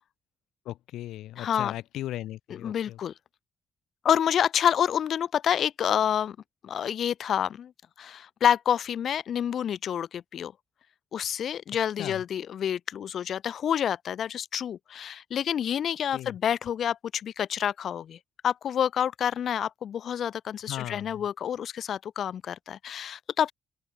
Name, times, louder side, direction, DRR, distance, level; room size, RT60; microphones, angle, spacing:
voice 1, 0.7-3.0 12.0-12.2 16.1-16.4 20.7-21.3, left 14 dB, 85° left, 7.0 m, -37 dB
voice 2, 1.4-1.7 2.5-3.1 4.0-6.4 6.6-7.7 8.0-10.5 11.1-18.2 18.4-23.5, left 9 dB, 60° left, 2.8 m, -28 dB
open air
cardioid pair, 90°, 0 cm